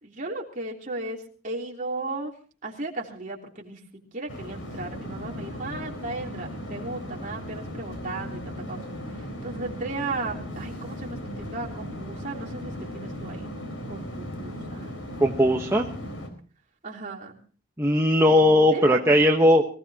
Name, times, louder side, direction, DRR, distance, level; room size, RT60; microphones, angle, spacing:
voice 1, 0.0-2.3 2.6-3.8 4.1-13.5 13.9-15.0 16.8-17.3 18.7-19.2, right 2 dB, 40° right, 0 dB, 3.3 m, -36 dB
sound 1, 4.3-16.3, equal, 70° left, 4.3 m, -37 dB
voice 2, 15.2-15.9 17.8-19.6, left 1 dB, 15° right, 0 dB, 1.1 m, -18 dB
23.5 x 16.5 x 2.9 m, 0.39 s
head